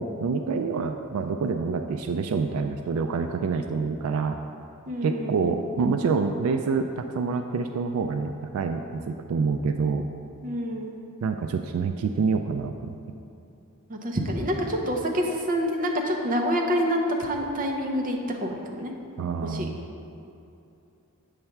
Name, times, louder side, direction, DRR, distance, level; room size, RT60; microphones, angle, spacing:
voice 1, 0.0-4.4 5.0-10.0 11.2-13.0 19.2-19.8, right 5 dB, 80° right, 6 dB, 0.3 m, -27 dB
voice 2, 4.9-5.6 10.4-10.9 13.9-18.9 19.4-19.7, equal, 40° right, 1 dB, 0.7 m, -27 dB
7.8 x 3.3 x 5.8 m, 2.8 s
head